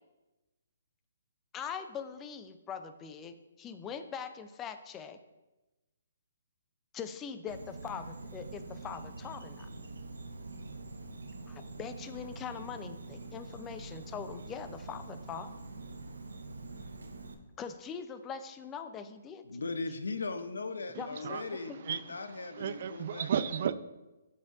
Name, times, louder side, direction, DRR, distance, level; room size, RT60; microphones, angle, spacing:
voice 1, 1.5-5.2 6.9-9.7 11.5-15.5 17.6-19.5 21.0-21.2 21.7-21.8, left 7 dB, 20° left, 10 dB, 0.4 m, -42 dB
Insect, 7.5-17.3, right 3 dB, 80° right, 0.7 m, -45 dB
voice 2, 19.4-23.3, left 3 dB, 80° left, 9 dB, 0.6 m, -38 dB
voice 3, 20.9-21.5 21.8-23.7, right 8 dB, 50° right, 13 dB, 0.4 m, -34 dB
12.5 x 4.2 x 2.5 m, 1.1 s
hypercardioid pair, 140°, 0 cm